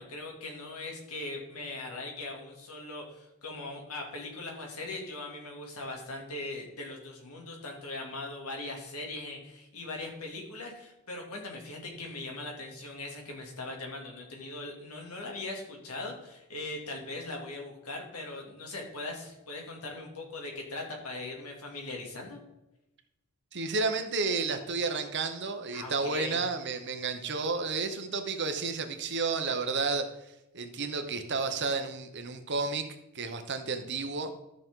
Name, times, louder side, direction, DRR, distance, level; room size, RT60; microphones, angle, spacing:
voice 1, 0.0-22.4 25.7-26.4, left 2 dB, 80° left, 1 dB, 2.8 m, -40 dB
voice 2, 23.5-30.1 30.5-32.9 33.1-34.3, right 4 dB, 50° right, 7 dB, 1.1 m, -31 dB
13.5 x 6.5 x 3.9 m, 0.92 s
head